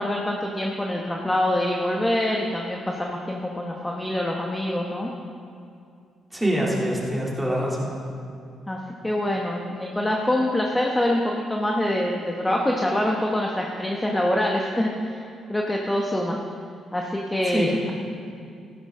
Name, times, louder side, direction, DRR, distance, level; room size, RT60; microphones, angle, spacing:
voice 1, 0.0-5.1 8.7-8.8 9.0-16.4 16.9-17.9, left 1 dB, 10° left, -1 dB, 1.1 m, -25 dB
voice 2, 6.3-7.9 17.4-17.7, right 1 dB, 5° right, -4 dB, 3.0 m, -25 dB
15.0 x 12.0 x 3.8 m, 2.4 s
cardioid pair, 90°, 0 cm